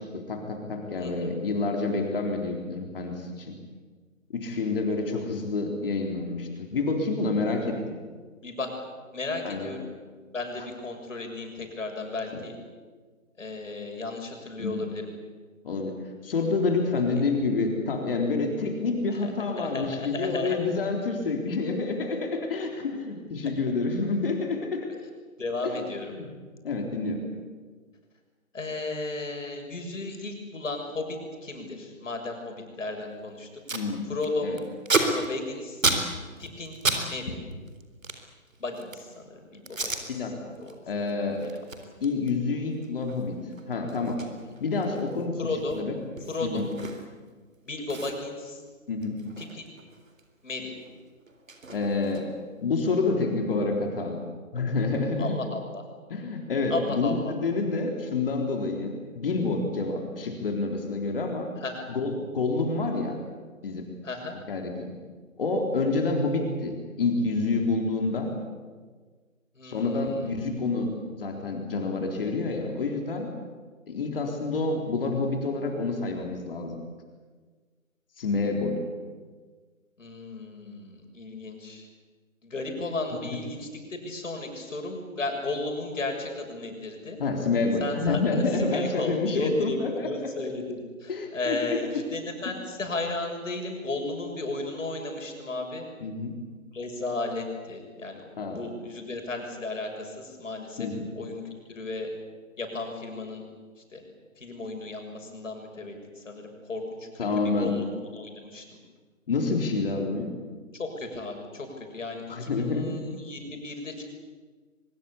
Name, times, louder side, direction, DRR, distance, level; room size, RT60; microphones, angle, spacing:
voice 1, 0.0-3.6 4.3-7.8 9.4-9.7 12.3-12.4 14.6-14.8 15.6-15.9 16.2-24.9 25.6-26.3 26.6-27.2 33.7-34.1 34.4-34.6 40.1-40.6 40.9-41.4 42.0-43.4 43.7-44.2 44.6-45.4 45.8-46.0 46.4-46.7 48.9-49.2 51.7-52.3 52.6-54.2 54.5-55.4 56.1-61.5 61.9-63.2 63.6-63.9 64.5-64.9 65.4-68.3 69.6-73.3 73.9-76.8 78.2-78.8 87.2-90.3 91.1-92.0 96.0-96.4 98.4-98.6 100.8-101.1 107.2-107.7 109.3-110.3 112.3-112.9, left 3 dB, 40° left, 3 dB, 3.9 m, -28 dB
voice 2, 1.0-1.3 5.1-5.2 8.4-8.7 9.1-9.9 10.3-12.6 13.4-15.1 19.1-19.3 19.6-20.6 25.4-26.1 28.5-33.5 34.1-34.5 34.9-35.8 36.4-36.8 37.0-37.3 38.6-40.3 40.6-40.7 41.4-41.5 45.4-45.8 46.3-46.6 47.6-48.6 49.4-49.6 50.4-50.7 55.2-55.8 56.7-57.3 61.6-61.8 64.0-64.4 69.5-70.4 80.0-81.9 82.4-87.2 87.8-95.9 96.7-98.2 98.5-100.9 101.1-101.4 101.7-102.1 102.6-103.4 103.8-104.0 104.4-108.8 110.7-114.0, left 2 dB, 65° left, 3 dB, 6.9 m, -34 dB
Packing tape duct tape, 33.1-33.2 33.4-33.9 34.2-37.0 37.3-39.1 39.7-40.0 40.5-40.7 41.1-47.3 47.5-47.6 47.9-50.3 50.5-52.5, right 3 dB, 70° right, 4.0 m, -32 dB
23.5 x 22.0 x 8.5 m, 1.5 s
figure-of-eight pair, 150°, 41 cm